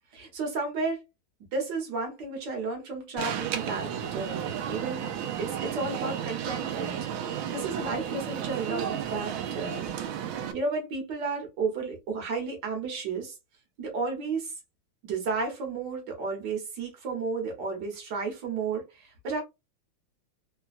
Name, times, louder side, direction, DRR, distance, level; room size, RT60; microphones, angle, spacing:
voice 1, 0.1-1.0 1.5-5.1 5.4-9.9 10.5-13.3 13.8-14.5 15.0-19.4, right 4 dB, 60° right, 1.7 m, -33 dB
Alarm, 3.2-10.5, right 9 dB, 80° right, 1.3 m, -33 dB
3.8 x 2.2 x 2.4 m
omnidirectional pair, 2.2 m